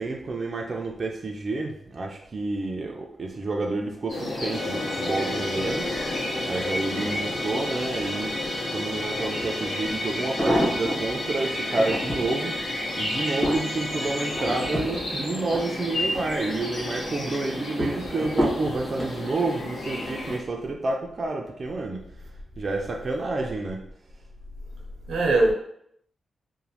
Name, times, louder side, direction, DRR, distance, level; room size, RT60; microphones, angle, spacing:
voice 1, 0.0-6.0 6.4-8.4 8.7-12.6 13.0-22.1 22.6-23.9, right 3 dB, 45° right, 0.3 m, -29 dB
sound 1, 4.1-20.4, left 1 dB, 85° left, 0.9 m, -32 dB
Musical instrument, 4.5-14.8, left 1 dB, 60° left, 0.5 m, -33 dB
voice 2, 6.9-7.2 25.1-25.5, right 2 dB, 90° right, 0.6 m, -22 dB
sound 2, 9.4-9.5 10.1-11.1 11.6-12.3 12.9-16.3 16.7-17.1 17.8-19.2 19.9-20.3 20.6-20.7, equal, 25° left, 1.0 m, -29 dB
3.0 x 2.1 x 2.7 m
cardioid pair, 95°, 0 cm